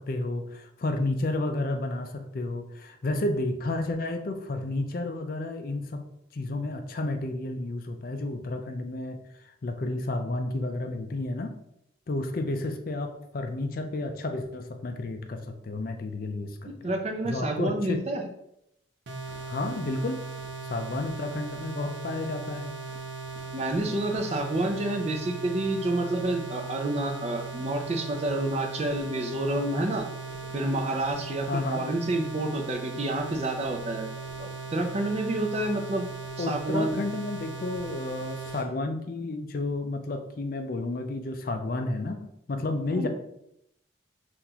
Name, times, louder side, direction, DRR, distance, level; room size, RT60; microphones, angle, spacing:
voice 1, 0.0-6.0 6.3-9.2 9.6-11.6 12.1-16.9 17.2-18.0 19.5-20.2 20.6-22.7 31.5-31.8 36.4-43.1, left 2 dB, 50° left, 6 dB, 0.4 m, -31 dB
voice 2, 16.7-18.3 23.5-30.1 30.5-34.1 34.4-36.1 36.4-37.0 42.9-43.1, right 1 dB, 35° right, 4 dB, 0.5 m, -29 dB
sound 1, 19.1-38.7, right 4 dB, 75° right, 0.8 m, -38 dB
5.8 x 2.5 x 2.8 m, 0.78 s
head